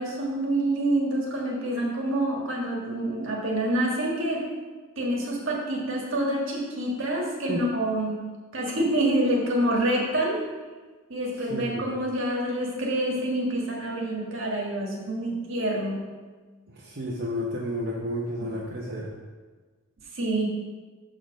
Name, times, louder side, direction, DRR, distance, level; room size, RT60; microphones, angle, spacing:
voice 1, 0.0-4.4 5.0-8.2 8.5-10.4 11.1-16.0 18.4-18.6 20.1-20.5, right 1 dB, 65° right, -2 dB, 1.5 m, -27 dB
voice 2, 11.5-11.9 16.7-19.1, equal, 45° right, -5 dB, 0.8 m, -31 dB
6.4 x 3.8 x 6.1 m, 1.4 s
head